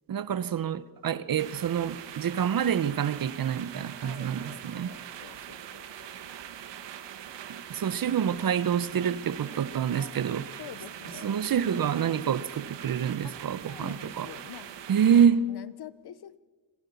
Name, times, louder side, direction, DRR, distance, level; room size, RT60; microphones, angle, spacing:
voice 1, 0.1-4.9 7.7-10.5 11.1-14.3 14.9-15.5, right 8 dB, 50° right, 1.0 m, -27 dB
sound 1, 1.4-15.3, right 9 dB, 75° right, 1.6 m, -42 dB
voice 2, 4.0-5.8 10.0-10.1 10.6-11.4 13.2-13.4 13.7-14.7 15.1-16.4, left 10 dB, 60° left, 1.0 m, -46 dB
26.0 x 15.5 x 7.1 m
cardioid pair, 90°, 43 cm